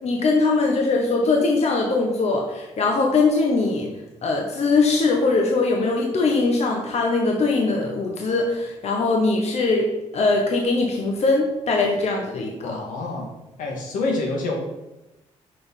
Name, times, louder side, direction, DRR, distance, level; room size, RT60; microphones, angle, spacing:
voice 1, 0.0-3.9 4.2-9.9 10.1-12.8, left 3 dB, 55° left, 0 dB, 1.3 m, -21 dB
voice 2, 12.6-13.3 13.6-14.5, left 3 dB, 85° left, -1 dB, 1.9 m, -27 dB
6.1 x 5.2 x 5.5 m, 0.99 s
cardioid pair, 85°, 13 cm